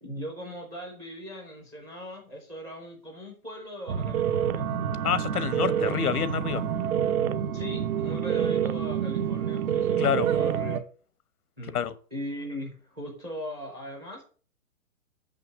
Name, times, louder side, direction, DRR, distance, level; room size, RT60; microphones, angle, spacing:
voice 1, 0.0-4.6 7.5-10.8 11.6-11.9 12.1-14.2, equal, 5° right, 0.4 m, -39 dB
sound 1, 3.9-10.8, right 9 dB, 75° right, 0.9 m, -27 dB
voice 2, 5.0-6.6 10.0-10.3 11.7-11.9, left 8 dB, 90° left, 1.1 m, -27 dB
6.2 x 5.7 x 6.1 m
hypercardioid pair, 145°, 43 cm